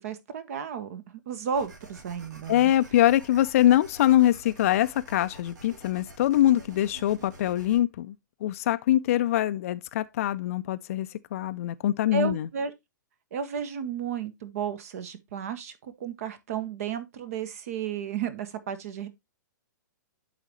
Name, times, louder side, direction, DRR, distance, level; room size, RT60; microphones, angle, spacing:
voice 1, 0.0-2.7 12.1-12.7 13.3-19.1, right 7 dB, 50° right, 0.9 m, -33 dB
sound 1, 1.5-7.8, right 2 dB, 65° right, 2.5 m, -49 dB
voice 2, 2.5-8.2 8.4-12.5, left 13 dB, 45° left, 0.4 m, -23 dB
11.5 x 4.0 x 3.0 m
figure-of-eight pair, 115°, 10 cm